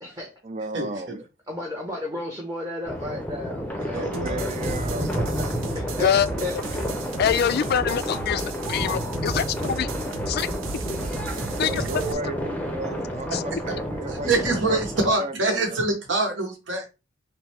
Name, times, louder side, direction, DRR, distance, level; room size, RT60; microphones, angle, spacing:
voice 1, 0.4-1.2 3.9-5.5 10.5-11.1 11.4-15.8, right 2 dB, 35° right, 0.6 m, -35 dB
voice 2, 1.5-4.1 5.7-6.1 6.4-6.5, left 1 dB, 20° right, 1.0 m, -33 dB
sound 1, 2.8-15.1, equal, 10° left, 0.7 m, -30 dB
voice 3, 3.9-4.5 11.3-11.4 13.3-13.4 14.1-16.9, right 2 dB, 65° right, 1.2 m, -25 dB
sound 2, 4.1-12.1, right 4 dB, 90° right, 0.5 m, -36 dB
voice 4, 7.2-9.9 10.3-10.5 11.6-11.7 13.3-13.4, left 8 dB, 55° left, 0.3 m, -24 dB
5.7 x 2.1 x 3.4 m
head